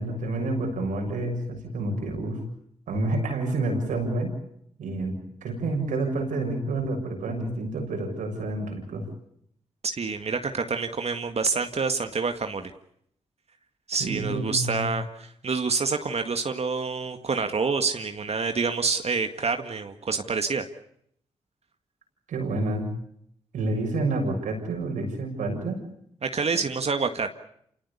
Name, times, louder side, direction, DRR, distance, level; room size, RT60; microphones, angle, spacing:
voice 1, 0.0-2.4 2.9-4.3 4.8-9.1 14.0-14.9 22.3-22.9 23.5-25.8, right 2 dB, 85° right, 3 dB, 6.9 m, -29 dB
voice 2, 9.8-12.7 13.9-20.6 26.2-27.3, right 4 dB, 55° right, 7 dB, 1.9 m, -27 dB
27.5 x 18.5 x 8.4 m, 0.71 s
supercardioid pair, 40°, 13 cm